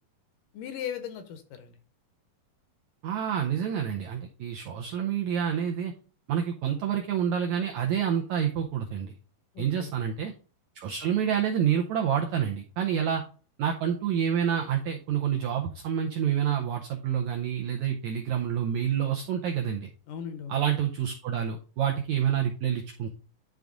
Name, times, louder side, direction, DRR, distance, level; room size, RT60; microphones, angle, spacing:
voice 1, 0.5-1.8 9.6-9.9 12.9-13.0 20.1-20.6, left 8 dB, 75° left, 8 dB, 2.1 m, -37 dB
voice 2, 3.0-5.9 6.3-9.1 9.6-10.3 10.7-13.2 13.6-19.9 20.5-23.1, right 9 dB, 85° right, 2 dB, 1.6 m, -28 dB
10.5 x 3.5 x 3.8 m, 0.40 s
omnidirectional pair, 4.2 m